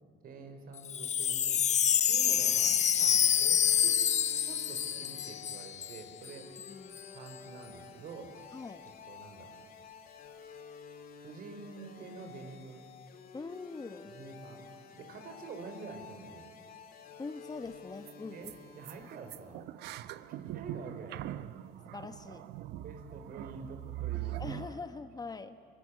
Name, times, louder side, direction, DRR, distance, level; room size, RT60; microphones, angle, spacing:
voice 1, 0.2-4.0 4.4-6.5 7.1-8.4 9.1-9.5 11.2-12.8 14.0-14.7 14.9-16.5 18.2-19.6 19.9-21.2 22.8-24.8, right 4 dB, 60° right, 6 dB, 4.7 m, -47 dB
Wind chime, 0.8-6.0 6.2-6.3 6.6-7.0, left 9 dB, 45° left, 0.8 m, -27 dB
sound 1, 3.2-19.6, left 6 dB, 60° left, 2.9 m, -52 dB
voice 2, 6.7-7.0 8.5-8.9 13.3-14.1 17.2-18.5 21.9-22.5 24.4-25.6, left 4 dB, 20° left, 10 dB, 1.2 m, -43 dB
sound 2, 17.7-17.8 18.0-18.1 18.4-18.6 18.8-24.7, right 14 dB, 80° right, 0.9 m, -41 dB
25.5 x 23.5 x 9.8 m, 2.2 s
cardioid pair, 110°, 17 cm